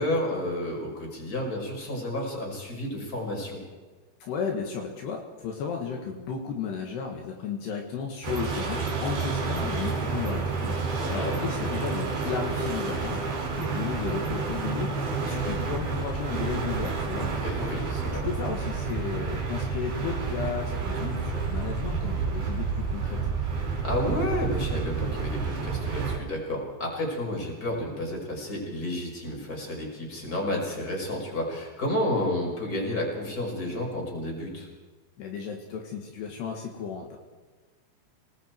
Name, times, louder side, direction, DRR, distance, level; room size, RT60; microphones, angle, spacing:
voice 1, 0.0-3.6 10.9-11.4 17.4-18.3 23.8-34.7, left 1 dB, 20° left, 0 dB, 5.4 m, -31 dB
voice 2, 4.2-13.2 13.5-17.3 17.6-17.7 18.0-23.2 35.2-37.2, left 6 dB, 70° left, 1 dB, 3.8 m, -34 dB
sound 1, 8.2-26.2, right 4 dB, 60° right, 6.1 m, -30 dB
29.5 x 19.5 x 4.6 m, 1.4 s
omnidirectional pair, 5.1 m